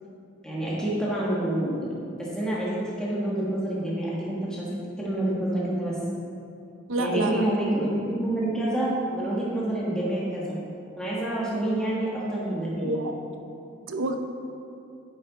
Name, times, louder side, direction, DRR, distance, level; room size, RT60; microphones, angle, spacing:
voice 1, 0.4-4.7 5.0-6.0 7.0-10.6 11.0-13.0, right 1 dB, 5° left, -7 dB, 1.5 m, -28 dB
voice 2, 6.9-7.4 12.8-13.1 13.9-14.2, right 2 dB, 80° right, 5 dB, 0.7 m, -27 dB
9.3 x 7.6 x 4.1 m, 2.6 s
head